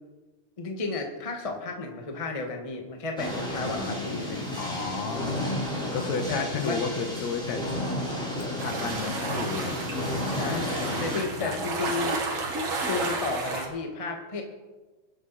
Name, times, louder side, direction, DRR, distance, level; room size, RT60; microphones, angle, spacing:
voice 1, 0.6-4.4 6.3-6.8 9.3-9.5 10.3-12.2 12.8-14.4, left 3 dB, 20° left, 2 dB, 0.9 m, -33 dB
sound 1, 3.2-11.2, left 1 dB, ahead, 3.9 m, -32 dB
voice 2, 4.5-5.4 5.9-7.6 8.6-9.9 10.4-10.8 11.4-11.6, left 5 dB, 70° left, 5 dB, 2.5 m, -32 dB
sound 2, 8.6-13.7, right 3 dB, 55° right, 2.6 m, -32 dB
23.5 x 8.5 x 4.2 m, 1.2 s
omnidirectional pair, 3.3 m